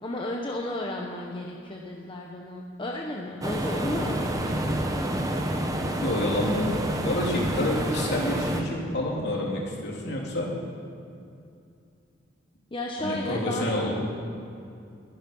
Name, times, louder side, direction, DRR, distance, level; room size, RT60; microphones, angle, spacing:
voice 1, 0.0-5.3 12.7-13.7, left 1 dB, 25° left, -1 dB, 1.0 m, -33 dB
sound 1, 3.4-8.6, right 1 dB, 20° right, 1.2 m, -28 dB
voice 2, 6.0-10.5 13.0-13.9, left 1 dB, 60° left, -2 dB, 3.4 m, -28 dB
21.5 x 10.0 x 5.6 m, 2.5 s
head